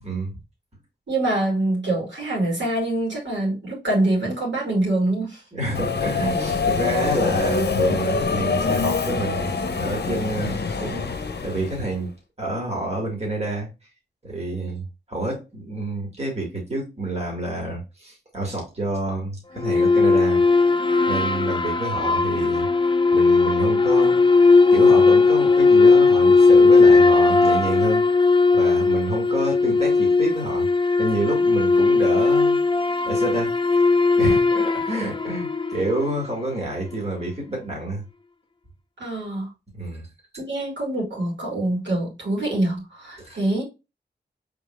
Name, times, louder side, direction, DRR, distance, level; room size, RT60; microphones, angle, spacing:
voice 1, 1.1-5.4 39.0-39.5 40.4-43.6, right 1 dB, 85° right, 2.5 m, -25 dB
voice 2, 5.5-11.1 11.4-12.1 12.4-13.7 14.2-20.4 21.1-22.7 23.1-24.2 24.7-28.0 28.5-30.7 31.0-32.6 33.0-33.8 34.2-38.0 39.7-40.1 43.2-43.4, right 2 dB, 35° right, 2.0 m, -28 dB
Subway metro underground, 5.7-12.0, left 4 dB, 65° left, 0.7 m, -24 dB
sound 1, 19.6-36.2, left 3 dB, 25° left, 0.4 m, -17 dB
4.9 x 3.8 x 2.5 m
wide cardioid pair, 70°, 18 cm